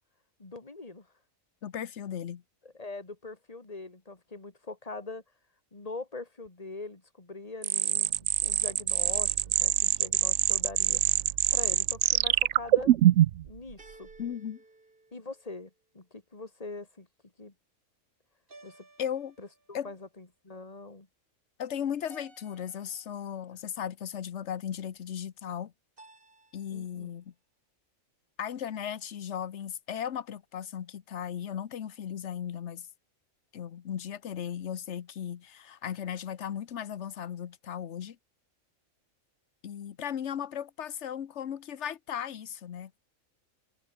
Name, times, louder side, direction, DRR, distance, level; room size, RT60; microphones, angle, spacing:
voice 1, 0.4-1.1 2.6-5.2 5.7-11.0 11.5-12.9 13.4-14.1 15.1-17.1 17.4-17.5 18.6-18.9 19.4-21.1 26.7-27.1, left 3 dB, 25° left, 2.5 m, -43 dB
voice 2, 1.6-2.4 14.2-14.6 19.0-19.3 19.7-19.9 21.6-25.7 26.5-27.3 28.4-32.9 33.5-38.2 39.6-43.0, left 9 dB, 60° left, 1.2 m, -36 dB
sound 1, 7.6-13.5, right 13 dB, 70° right, 0.9 m, -24 dB
sound 2, 9.4-10.0 13.8-15.8 18.5-19.9 22.1-23.3 26.0-27.0, right 2 dB, 40° right, 3.4 m, -57 dB
omnidirectional pair, 1.4 m